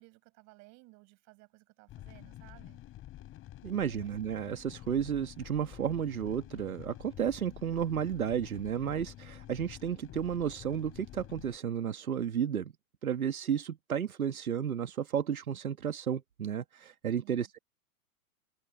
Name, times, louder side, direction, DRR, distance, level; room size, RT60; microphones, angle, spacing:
voice 1, 0.0-2.8 3.9-4.1 17.2-17.5, right 25 dB, 40° right, 5.5 m, -58 dB
sound 1, 1.9-11.6, left 14 dB, 30° left, 4.2 m, -49 dB
voice 2, 3.6-12.7 13.0-17.6, right 8 dB, 85° right, 1.6 m, -32 dB
hypercardioid pair, 110°, 41 cm